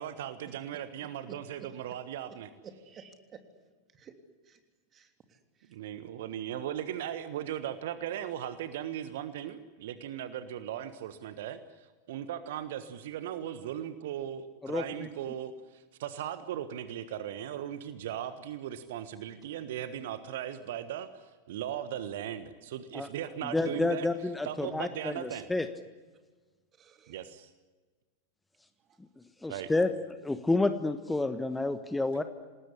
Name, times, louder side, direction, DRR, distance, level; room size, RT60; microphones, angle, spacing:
voice 1, 0.0-2.5 5.7-24.1 24.4-25.5 27.1-27.5 29.5-29.7, right 10 dB, 55° right, 12 dB, 1.4 m, -38 dB
voice 2, 2.6-3.4 3.9-4.1 4.5-4.6 4.9-5.7 26.8-27.2 28.9-29.0, right 7 dB, 25° right, 6 dB, 3.3 m, -52 dB
voice 3, 14.6-15.1 22.9-23.1 23.4-25.7 29.4-29.9 30.2-32.2, left 2 dB, 5° left, 10 dB, 1.3 m, -29 dB
28.0 x 19.5 x 10.0 m, 1.3 s
figure-of-eight pair, 90°, 0 cm